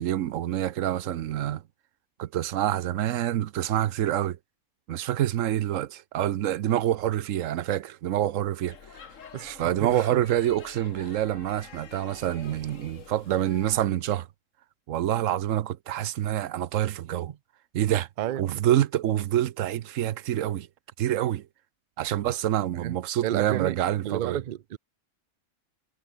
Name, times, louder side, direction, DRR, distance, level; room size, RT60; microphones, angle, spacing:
voice 1, 0.0-1.6 2.2-4.4 4.9-8.8 9.6-14.3 14.9-17.3 17.7-18.1 18.4-20.7 21.0-21.5 22.0-24.4, right 12 dB, 70° right, 1.0 m, -27 dB
Speech / Shout / Subway metro underground, 8.6-13.9, left 7 dB, 65° left, 1.7 m, -48 dB
voice 2, 9.3-10.2 17.3-17.4 18.2-18.6 22.7-23.0 23.2-23.8 24.0-24.8, right 12 dB, 90° right, 0.4 m, -32 dB
omnidirectional pair, 1.4 m